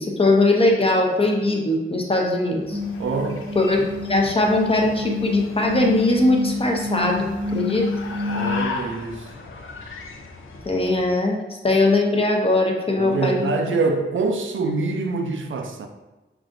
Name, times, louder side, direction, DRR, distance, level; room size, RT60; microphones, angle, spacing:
voice 1, 0.0-2.8 3.5-7.9 10.7-11.4 11.6-13.5, left 2 dB, 25° left, 0 dB, 0.8 m, -20 dB
sound 1, 2.5-11.2, left 3 dB, 75° left, 0.5 m, -37 dB
sound 2, 2.7-8.6, left 4 dB, 5° right, 0.6 m, -28 dB
voice 2, 3.0-3.5 8.3-9.3 13.0-15.9, right 3 dB, 70° right, 5 dB, 0.5 m, -25 dB
5.7 x 2.5 x 2.6 m, 1.1 s
wide cardioid pair, 70°, 21 cm